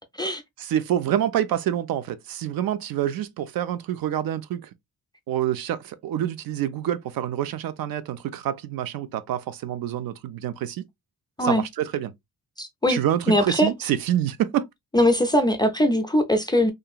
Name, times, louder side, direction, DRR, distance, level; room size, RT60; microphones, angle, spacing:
voice 1, 0.6-4.7 5.3-10.9 11.4-12.1 12.9-14.7, right 11 dB, 70° right, 0.5 m, -27 dB
voice 2, 12.6-13.0 13.3-13.7 14.9-16.7, equal, 15° left, 0.3 m, -21 dB
2.8 x 2.5 x 2.3 m
cardioid pair, 135°, 36 cm